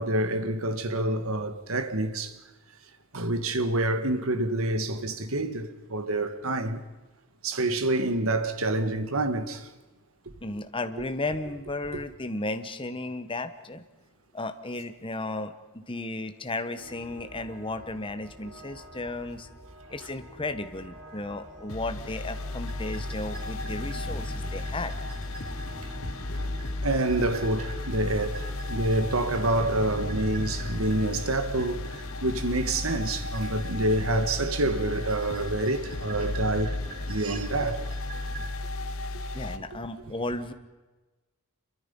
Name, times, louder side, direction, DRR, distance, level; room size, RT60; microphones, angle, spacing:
voice 1, 0.0-2.4 3.1-6.8 7.4-9.7 11.9-12.0 26.8-36.8 37.1-37.8 38.1-38.2, right 2 dB, 65° right, 1.9 m, -27 dB
voice 2, 10.4-13.8 14.3-19.5 19.9-24.9 39.3-40.5, left 2 dB, 25° left, 1.3 m, -34 dB
sound 1, 16.8-31.3, equal, 85° right, 7.9 m, -48 dB
sound 2, 21.7-39.6, left 2 dB, 65° left, 1.1 m, -34 dB
sound 3, 22.7-38.5, right 2 dB, 40° right, 3.7 m, -43 dB
27.0 x 23.5 x 5.5 m
head